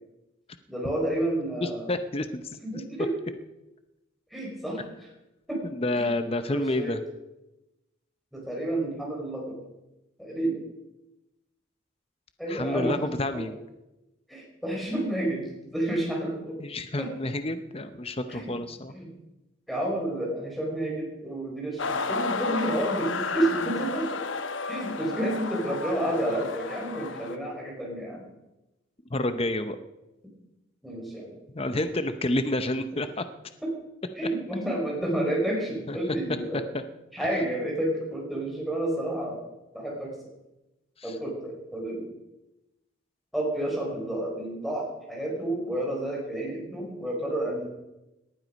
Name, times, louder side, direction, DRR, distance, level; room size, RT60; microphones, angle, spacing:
voice 1, 0.7-1.9 2.6-3.1 4.3-4.8 5.5-5.6 6.0-6.1 6.5-6.9 8.3-9.6 10.2-10.6 12.4-13.0 13.3-13.4 14.3-16.6 17.0-17.1 18.3-18.5 18.9-19.1 19.7-24.2 24.7-28.2 30.8-31.3 33.6-33.7 34.2-36.6 37.1-39.4 39.7-40.1 41.0-42.1 43.3-47.7, right 1 dB, ahead, -2 dB, 5.2 m, -30 dB
voice 2, 1.6-2.8 5.6-7.0 12.5-13.6 16.6-18.9 29.1-29.8 31.5-33.2 35.9-36.0 36.5-36.8 41.0-41.2, left 1 dB, 30° left, 10 dB, 0.7 m, -29 dB
sound 1, 21.8-27.4, left 4 dB, 65° left, 1.1 m, -32 dB
18.5 x 11.5 x 5.2 m, 0.95 s
head